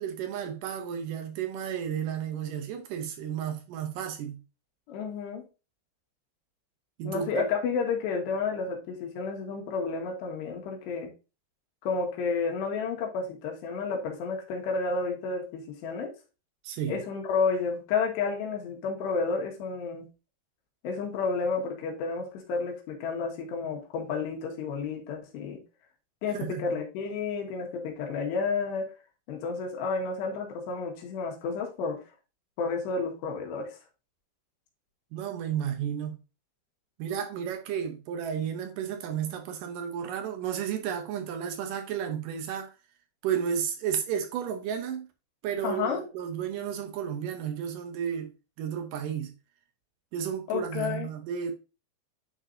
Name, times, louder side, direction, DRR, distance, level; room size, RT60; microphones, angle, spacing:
voice 1, 0.0-4.4 7.0-7.5 16.6-17.0 26.3-26.6 35.1-36.2 37.0-42.7 43.2-45.1 45.4-49.3 50.1-51.5, right 8 dB, 75° right, 2.0 m, -32 dB
voice 2, 4.9-5.5 7.0-11.1 11.8-16.1 16.9-20.0 20.8-25.6 26.2-28.9 29.3-32.0 32.6-33.8 45.6-46.0 50.5-51.1, left 4 dB, 85° left, 3.6 m, -31 dB
10.0 x 4.0 x 2.6 m
omnidirectional pair, 4.8 m